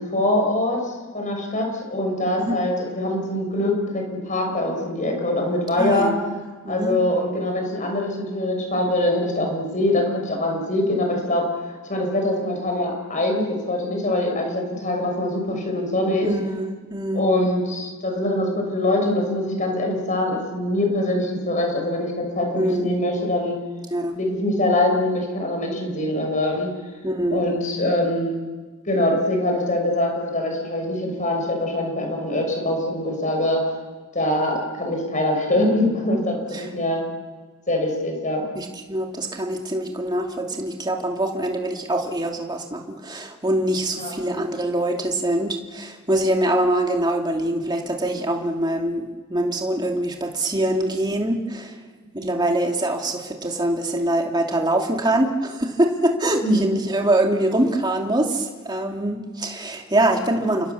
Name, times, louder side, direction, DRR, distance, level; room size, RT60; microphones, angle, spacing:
voice 1, 0.0-6.1 6.7-11.4 11.9-16.3 17.1-23.6 24.1-26.7 27.3-28.4 28.8-33.6 34.1-37.0 37.7-38.5 43.9-44.1 52.2-52.4 56.4-56.6, left 1 dB, 35° left, 2 dB, 6.2 m, -23 dB
voice 2, 5.8-6.3 6.6-7.0 16.2-17.2 22.5-22.9 23.9-24.2 27.0-27.5 36.5-36.7 38.5-49.0 49.3-51.8 52.1-60.7, right 1 dB, 20° right, 2 dB, 2.6 m, -24 dB
29.5 x 25.0 x 7.1 m, 1.4 s
head